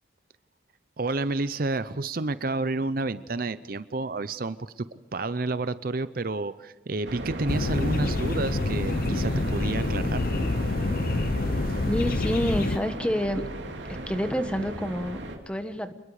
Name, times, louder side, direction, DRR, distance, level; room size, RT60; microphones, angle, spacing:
voice 1, 1.0-10.2, right 3 dB, 50° right, 14 dB, 0.6 m, -30 dB
sound 1, 7.0-15.4, right 1 dB, 70° right, 3.1 m, -36 dB
sound 2, 7.5-12.8, left 2 dB, 50° left, 0.7 m, -27 dB
voice 2, 11.9-13.4 13.9-15.9, equal, 5° left, 8 dB, 1.2 m, -28 dB
27.5 x 21.5 x 4.9 m, 1.1 s
head